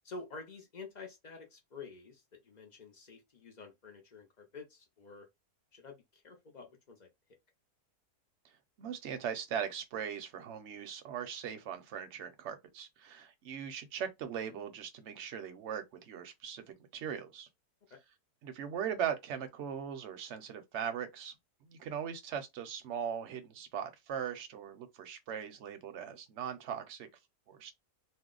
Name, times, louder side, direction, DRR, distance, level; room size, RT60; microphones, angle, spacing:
voice 1, 0.0-5.3 5.7-7.1 17.9-18.0, left 4 dB, 75° left, 0.4 m, -49 dB
voice 2, 8.8-16.6 16.9-17.5 18.4-21.3 21.6-27.1 27.5-27.7, right 8 dB, 60° right, 0.8 m, -39 dB
2.6 x 2.1 x 3.7 m
omnidirectional pair, 1.7 m